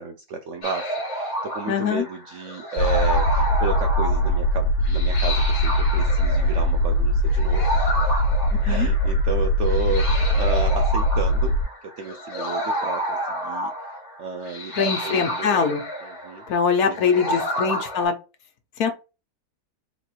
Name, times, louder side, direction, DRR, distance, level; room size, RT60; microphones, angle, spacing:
voice 1, 0.0-7.9 8.6-15.7 16.0-16.5 16.8-17.8, right 4 dB, 70° right, 0.7 m, -33 dB
sound 1, 0.6-18.0, equal, 45° left, 1.7 m, -30 dB
voice 2, 1.7-2.0 8.5-8.9 14.8-15.8 16.5-18.1 18.8-18.9, left 6 dB, 65° left, 1.3 m, -23 dB
sound 2, 2.8-11.6, equal, 85° left, 1.3 m, -21 dB
3.9 x 2.5 x 4.4 m
omnidirectional pair, 1.7 m